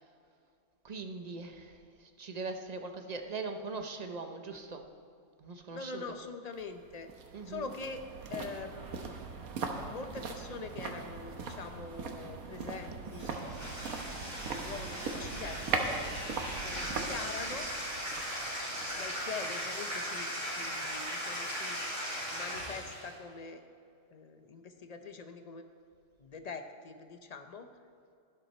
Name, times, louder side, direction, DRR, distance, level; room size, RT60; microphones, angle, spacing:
voice 1, 0.8-4.8 5.4-6.2 7.3-7.7, right 3 dB, 35° right, 5 dB, 0.7 m, -41 dB
voice 2, 5.7-7.1 7.5-8.0 8.3-9.2 9.7-15.9 16.6-17.7 18.9-21.8 22.3-23.6 24.1-25.6 26.2-27.7, left 4 dB, 40° left, 7 dB, 0.6 m, -44 dB
Walk - Street, 6.5-19.7 20.0-20.1, right 4 dB, 80° right, 1.5 m, -40 dB
Bathtub (filling or washing), 13.1-23.1, equal, 60° right, 4.0 m, -38 dB
12.0 x 11.5 x 4.3 m, 2.4 s
omnidirectional pair, 1.5 m